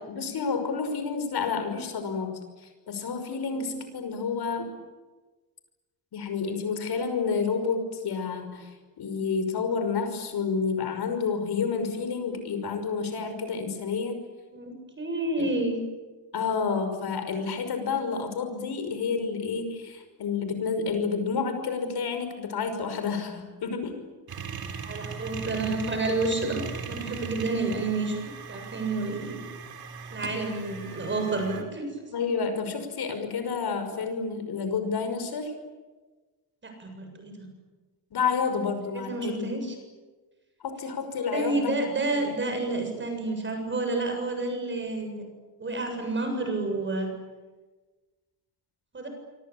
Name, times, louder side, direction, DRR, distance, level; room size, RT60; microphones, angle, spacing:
voice 1, 0.1-2.3 2.9-4.7 6.1-8.7 9.0-14.2 15.4-15.5 16.3-23.9 32.1-35.5 38.1-39.5 40.6-41.7 42.1-42.7, left 5 dB, 70° left, 8 dB, 5.9 m, -29 dB
voice 2, 14.5-15.8 24.8-29.4 30.1-31.9 36.6-37.5 39.1-39.8 41.3-45.2 45.6-47.1 48.9-49.1, right 2 dB, 30° right, 4 dB, 7.5 m, -30 dB
sound 1, 24.3-31.6, right 5 dB, 60° right, 3.8 m, -38 dB
26.5 x 26.0 x 8.8 m, 1.3 s
wide cardioid pair, 180°, 40 cm